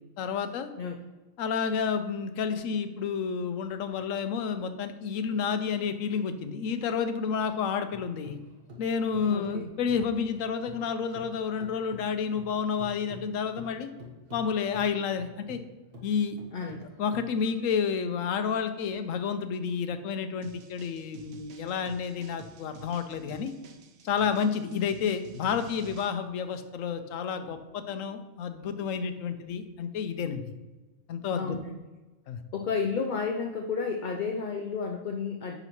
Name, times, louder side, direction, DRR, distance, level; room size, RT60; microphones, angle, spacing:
voice 1, 0.2-0.7 1.4-8.4 8.8-13.9 14.3-15.6 16.0-16.4 17.0-23.5 24.0-30.4 31.1-31.6 32.3-32.4, left 6 dB, 80° left, 9 dB, 1.0 m, -30 dB
sound 1, 7.5-10.9 11.1-17.8, left 2 dB, 45° right, 1.4 m, -48 dB
voice 2, 9.3-9.7 16.5-16.8 24.7-24.9 31.3-31.8 32.5-35.6, left 5 dB, 55° left, 3 dB, 0.5 m, -32 dB
sound 2, 20.4-26.1, right 4 dB, 85° right, 1.1 m, -51 dB
9.9 x 3.9 x 3.0 m, 1.2 s
omnidirectional pair, 1.4 m